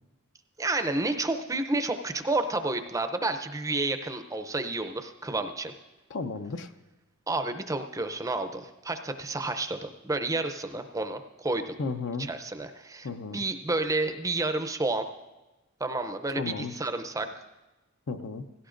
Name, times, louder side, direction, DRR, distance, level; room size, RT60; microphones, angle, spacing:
voice 1, 0.6-5.7 7.3-11.8 12.2-15.1 15.8-17.3, right 2 dB, 15° right, 7 dB, 0.5 m, -30 dB
voice 2, 6.1-6.7 11.8-12.3 13.0-13.4 16.4-16.7 18.1-18.4, left 4 dB, 60° left, 9 dB, 0.6 m, -33 dB
17.0 x 16.5 x 2.5 m, 1.1 s
head